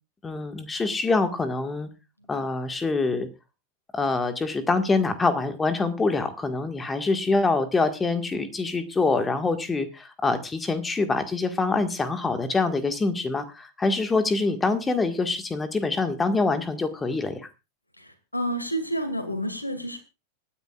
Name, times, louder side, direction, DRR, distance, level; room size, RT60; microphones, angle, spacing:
voice 1, 0.2-1.9 2.3-3.3 3.9-17.4, left 3 dB, 15° left, 8 dB, 1.7 m, -25 dB
voice 2, 18.0-20.0, right 1 dB, 85° left, 9 dB, 2.3 m, -29 dB
25.0 x 9.7 x 2.4 m, 0.28 s
figure-of-eight pair, 90°, 0 cm